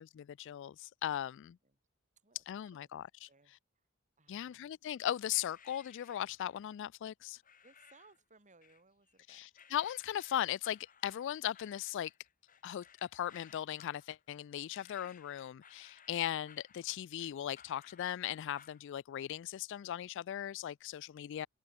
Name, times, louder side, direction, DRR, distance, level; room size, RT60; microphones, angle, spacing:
voice 1, 0.0-1.6 2.5-3.3 4.3-7.4 9.3-12.1 12.6-21.5, left 11 dB, 60° left, 0.3 m, -38 dB
voice 2, 2.2-3.6 4.2-4.7 7.6-9.4, right 3 dB, 35° right, 6.3 m, -65 dB
sound 1, 5.3-6.6 7.4-8.2 8.6-9.2 9.6-18.8, left 7 dB, 40° left, 2.3 m, -61 dB
head